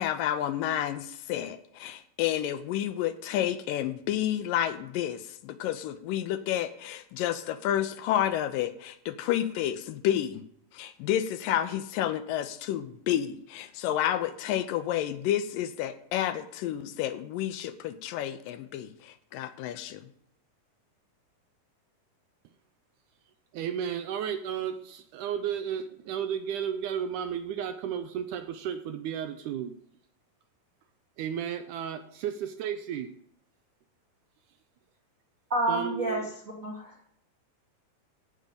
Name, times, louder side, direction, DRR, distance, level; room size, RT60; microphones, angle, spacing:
voice 1, 0.0-10.4 10.7-20.1, left 11 dB, 80° left, 11 dB, 2.3 m, -30 dB
voice 2, 23.5-29.7 31.2-33.1 35.7-36.3, right 9 dB, 75° right, 8 dB, 1.9 m, -33 dB
voice 3, 35.5-36.2 36.6-37.1, right 1 dB, 50° right, -2 dB, 0.9 m, -29 dB
15.5 x 5.2 x 6.8 m, 0.69 s
omnidirectional pair, 4.1 m